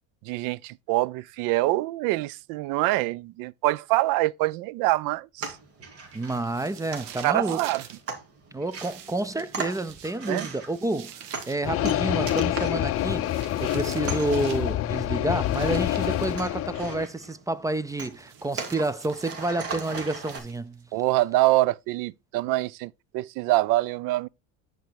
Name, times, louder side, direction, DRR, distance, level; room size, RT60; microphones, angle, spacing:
voice 1, 0.2-5.5 7.2-7.8 10.3-10.5 11.8-11.9 16.0-16.1 20.9-24.3, right 18 dB, 65° right, 0.6 m, -25 dB
sound 1, 5.4-20.4, right 4 dB, 40° right, 2.8 m, -40 dB
voice 2, 6.1-7.6 8.5-13.3 13.6-20.8, right 2 dB, 10° right, 0.4 m, -29 dB
sound 2, 6.1-8.0 8.7-11.7 12.9-14.7 15.4-16.4 18.0-20.8, right 9 dB, 80° right, 1.8 m, -46 dB
sound 3, 11.6-17.1, left 13 dB, 40° left, 0.5 m, -27 dB
10.5 x 4.5 x 4.6 m
supercardioid pair, 110°, 36 cm